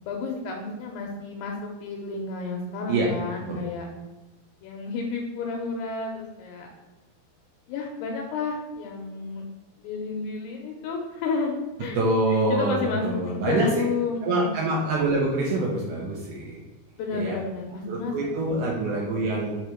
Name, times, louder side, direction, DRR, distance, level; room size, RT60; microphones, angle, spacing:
voice 1, 0.0-3.9 4.6-6.7 7.7-9.4 9.8-12.0 12.5-14.5 17.0-18.1 18.4-18.5, left 4 dB, 85° left, 1 dB, 2.8 m, -31 dB
voice 2, 12.0-13.7 14.2-16.6 17.1-17.4 17.9-19.6, right 2 dB, 75° right, -3 dB, 2.0 m, -25 dB
6.4 x 3.5 x 4.4 m, 1.1 s
omnidirectional pair, 4.7 m